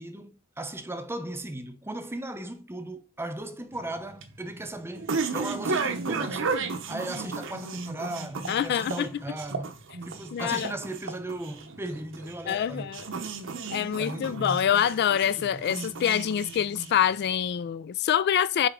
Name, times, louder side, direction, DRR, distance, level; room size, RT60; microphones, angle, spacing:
voice 1, 0.0-6.5 6.9-9.8 10.0-13.0 14.0-14.7 15.4-15.6, right 1 dB, 10° right, 0.6 m, -37 dB
sound 1, 3.7-17.3, right 4 dB, 60° right, 0.9 m, -34 dB
voice 2, 8.5-9.1 10.3-10.7 12.5-13.1 13.7-18.7, left 9 dB, 50° left, 0.3 m, -25 dB
7.1 x 4.6 x 3.7 m
head